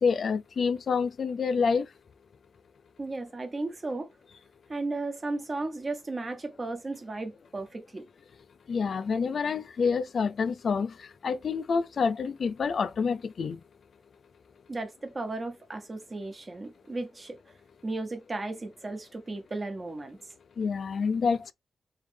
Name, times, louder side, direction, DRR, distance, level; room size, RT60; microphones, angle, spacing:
voice 1, 0.0-1.9 8.7-13.6 20.6-21.5, left 5 dB, 65° left, 0.4 m, -27 dB
voice 2, 3.0-4.1 4.7-8.1 14.7-17.4 17.8-20.3, right 2 dB, 35° right, 1.0 m, -35 dB
3.3 x 3.1 x 3.3 m
wide cardioid pair, 100°, 0 cm